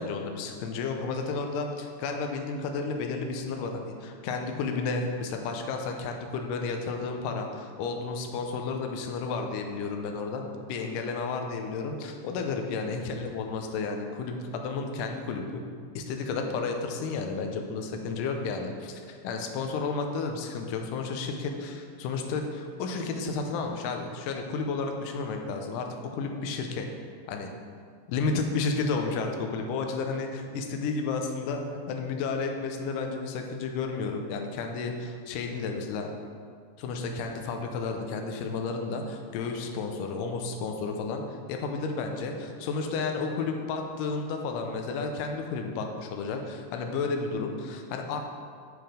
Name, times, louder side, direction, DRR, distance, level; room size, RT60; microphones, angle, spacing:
voice 1, 0.0-10.4 10.7-15.6 16.0-26.9 27.3-27.5 28.1-31.6 31.9-36.1 36.8-48.2, left 4 dB, 80° left, 3 dB, 2.2 m, -32 dB
9.4 x 4.7 x 5.1 m, 2.1 s
omnidirectional pair, 4.2 m